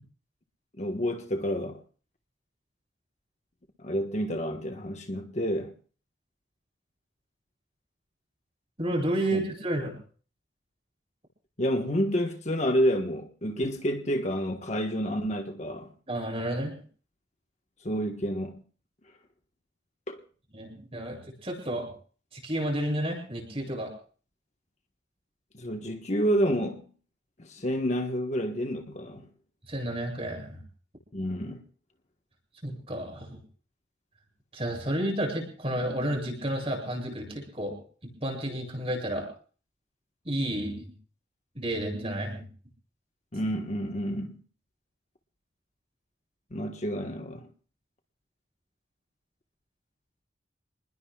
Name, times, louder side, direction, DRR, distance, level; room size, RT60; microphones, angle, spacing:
voice 1, 0.8-1.8 3.8-5.7 9.3-9.4 11.6-15.9 17.8-18.6 20.1-20.2 25.5-26.8 27.4-29.3 31.1-31.6 43.3-44.4 46.5-47.5, equal, 40° left, 1.3 m, -29 dB
voice 2, 8.8-10.0 16.1-16.8 20.5-21.9 22.3-23.9 29.7-30.6 32.6-33.4 34.5-37.8 38.0-39.3 40.2-40.9 41.5-42.5, right 1 dB, 30° right, 7.9 m, -31 dB
28.5 x 20.5 x 2.4 m
head